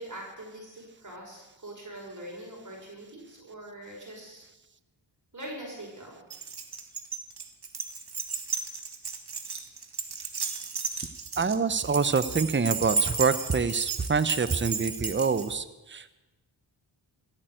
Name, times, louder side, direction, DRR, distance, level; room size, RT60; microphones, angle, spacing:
voice 1, 0.0-4.4 5.3-6.2, right 1 dB, 40° right, -1 dB, 5.7 m, -43 dB
Keys jangling, 6.3-15.5, right 4 dB, 55° right, 1.9 m, -33 dB
voice 2, 11.4-15.6 15.9-16.2, right 5 dB, 25° right, 13 dB, 0.9 m, -26 dB
15.5 x 9.2 x 9.3 m, 1.1 s
cardioid pair, 55°, 47 cm